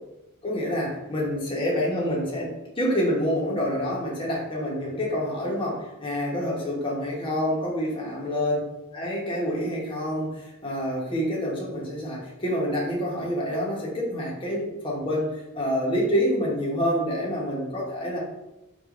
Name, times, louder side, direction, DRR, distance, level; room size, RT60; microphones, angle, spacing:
voice 1, 0.4-8.6 8.9-18.2, equal, 25° left, -4 dB, 0.8 m, -27 dB
4.7 x 2.4 x 2.4 m, 0.95 s
head